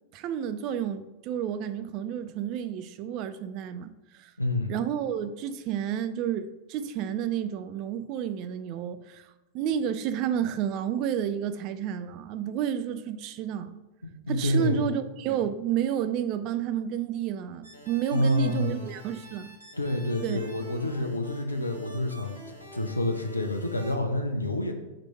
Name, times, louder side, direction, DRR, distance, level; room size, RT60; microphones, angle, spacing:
voice 1, 0.1-4.3 4.7-13.8 14.3-19.6 20.2-20.4, right 9 dB, 40° right, 0.4 m, -31 dB
voice 2, 4.4-4.7 14.3-14.9 18.1-18.8 19.8-22.4 22.7-24.7, left 1 dB, 80° left, 0.7 m, -28 dB
sound 1, 17.6-23.9, equal, 85° right, 1.3 m, -47 dB
4.8 x 3.8 x 5.5 m
figure-of-eight pair, 90°, 0 cm